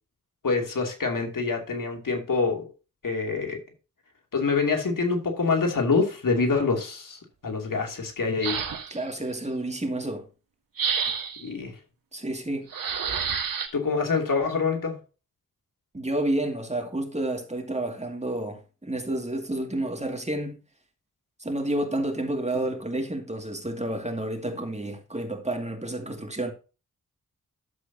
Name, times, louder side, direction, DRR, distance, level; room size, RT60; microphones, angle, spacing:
voice 1, 0.4-2.7 3.0-3.6 4.3-8.6 11.4-11.8 13.7-15.0, left 4 dB, 75° left, 2.6 m, -26 dB
sound 1, 8.4-9.1 10.8-11.5 12.7-13.7, right 6 dB, 90° right, 1.4 m, -29 dB
voice 2, 8.9-10.3 12.1-12.7 15.9-20.6 21.4-26.5, right 1 dB, 20° right, 2.3 m, -30 dB
11.5 x 7.6 x 2.8 m
cardioid pair, 60°, 33 cm